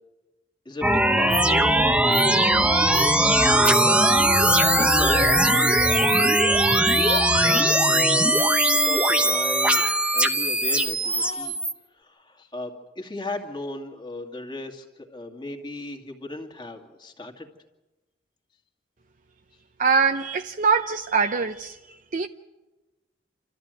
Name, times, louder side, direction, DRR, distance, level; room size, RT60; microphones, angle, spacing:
voice 1, 0.6-2.7 3.2-3.3 3.6-4.2 4.7-7.1 7.3-8.4 8.7-11.6 11.9-17.5, left 2 dB, 25° left, 2.4 m, -37 dB
sound 1, 0.8-11.7, right 1 dB, 5° right, 0.9 m, -20 dB
Speech, 6.7-7.8 9.1-9.4 9.6-10.0 10.7-11.5, left 1 dB, 85° left, 2.6 m, -32 dB
voice 2, 19.8-22.3, right 5 dB, 45° right, 0.7 m, -23 dB
28.0 x 14.0 x 9.1 m
head